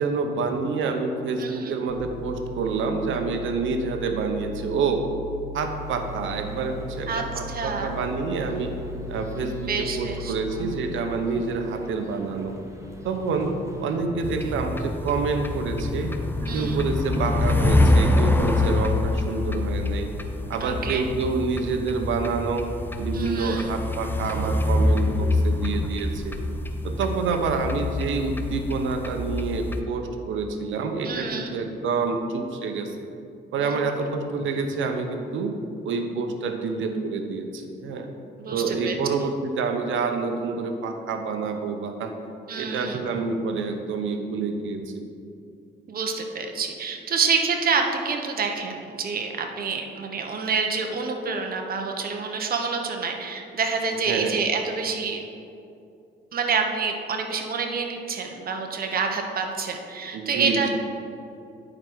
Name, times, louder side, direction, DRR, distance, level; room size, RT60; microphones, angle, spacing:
voice 1, 0.0-5.0 5.5-8.7 9.1-12.6 13.0-13.5 13.8-16.1 16.5-20.1 20.5-22.7 23.0-26.4 26.8-33.0 33.5-35.5 35.8-38.1 38.5-42.1 42.5-44.9 54.1-54.4 60.1-60.8, right 4 dB, 75° right, 5 dB, 0.9 m, -27 dB
voice 2, 1.4-1.8 7.1-7.9 9.6-10.3 16.4-16.8 20.6-21.0 23.1-23.7 31.0-31.5 33.6-34.1 38.4-39.0 42.5-43.0 45.9-55.2 56.3-60.8, right 5 dB, 50° right, 3 dB, 1.0 m, -28 dB
sound 1, 1.9-11.9, left 3 dB, 80° left, 0.9 m, -38 dB
sound 2, 5.6-14.0, equal, 15° right, 1.0 m, -43 dB
sound 3, 14.2-29.8, left 2 dB, 10° left, 0.6 m, -25 dB
9.9 x 5.0 x 4.6 m, 2.5 s
cardioid pair, 90°, 20 cm